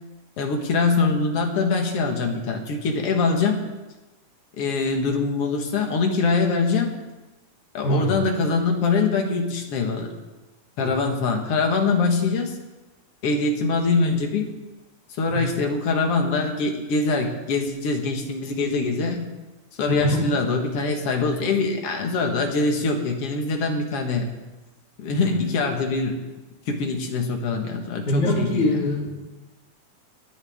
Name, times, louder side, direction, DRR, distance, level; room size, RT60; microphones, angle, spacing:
voice 1, 0.4-3.6 4.6-6.9 7.7-10.1 10.8-12.6 13.2-14.5 15.2-19.2 19.8-24.3 25.0-26.2 26.7-28.6, left 4 dB, 55° left, 2 dB, 2.4 m, -23 dB
voice 2, 19.9-20.3 28.1-29.2, left 1 dB, 75° left, -3 dB, 4.2 m, -23 dB
20.5 x 11.0 x 3.6 m, 1.1 s
omnidirectional pair, 3.5 m